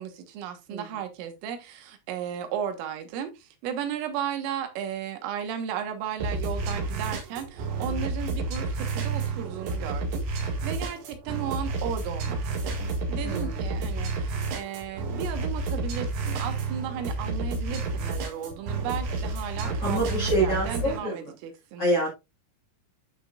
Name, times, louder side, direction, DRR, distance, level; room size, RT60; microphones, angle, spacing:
voice 1, 0.0-21.8, right 8 dB, 80° right, 3.8 m, -35 dB
sound 1, 6.2-21.0, right 3 dB, 65° right, 4.0 m, -30 dB
voice 2, 13.2-13.6 19.6-21.3 21.8-22.1, right 1 dB, 60° left, 1.5 m, -27 dB
12.0 x 5.0 x 2.4 m
omnidirectional pair, 5.8 m